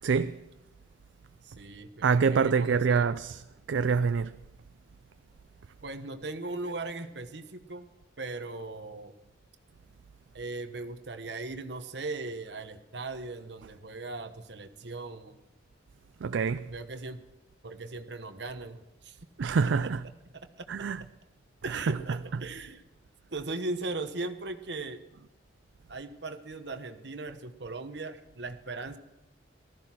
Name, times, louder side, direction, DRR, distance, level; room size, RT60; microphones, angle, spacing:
voice 1, 0.0-0.5 2.0-3.4 3.7-4.4 16.2-16.7 19.4-20.0 20.7-21.0 21.7-22.2, right 5 dB, 85° right, 0.4 m, -26 dB
voice 2, 1.4-3.1 5.8-7.9 8.2-9.1 10.3-15.4 16.7-17.2 17.6-19.2 20.6-20.7 21.6-22.8 23.3-25.0 25.9-29.0, right 3 dB, 70° right, 1.2 m, -38 dB
15.5 x 14.0 x 5.9 m
head